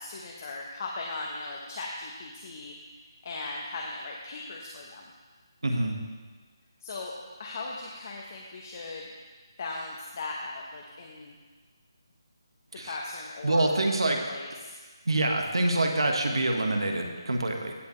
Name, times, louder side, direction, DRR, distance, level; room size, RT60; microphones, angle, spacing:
voice 1, 0.0-2.7 3.2-5.1 6.8-7.1 7.4-9.1 9.6-11.3 12.8-14.8, left 3 dB, 40° left, -1 dB, 1.0 m, -38 dB
voice 2, 5.6-6.0 12.8-13.0 13.4-14.2 15.0-17.7, right 2 dB, 90° right, 3 dB, 1.6 m, -26 dB
16.0 x 7.2 x 3.3 m, 1.4 s
figure-of-eight pair, 165°, 2 cm